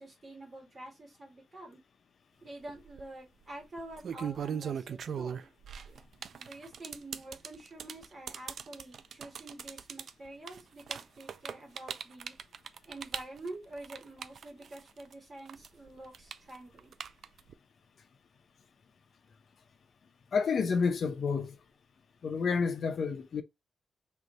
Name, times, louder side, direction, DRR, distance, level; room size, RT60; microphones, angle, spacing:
voice 1, 0.0-1.8 2.4-5.5 6.4-12.3 12.8-16.9, right 2 dB, 25° right, 1.8 m, -47 dB
sound 1, 2.7-3.0 3.8-15.1 15.5-17.5, right 7 dB, 60° right, 0.4 m, -39 dB
voice 2, 20.3-21.6 22.2-23.4, left 5 dB, 50° left, 0.7 m, -29 dB
3.3 x 3.1 x 3.9 m
wide cardioid pair, 160°, 0 cm